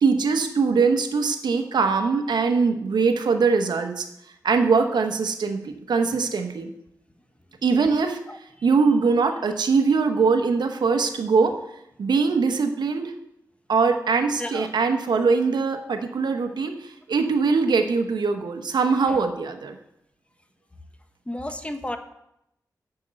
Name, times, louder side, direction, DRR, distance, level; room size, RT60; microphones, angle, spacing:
voice 1, 0.0-4.1 4.4-6.7 7.6-8.2 8.6-11.6 12.0-13.1 13.7-19.8, right 4 dB, 80° right, 6 dB, 1.0 m, -22 dB
voice 2, 14.4-14.7 19.1-19.2 21.3-22.0, left 1 dB, 15° left, 8 dB, 1.1 m, -32 dB
7.1 x 6.7 x 7.9 m, 0.81 s
cardioid pair, 45°, 7 cm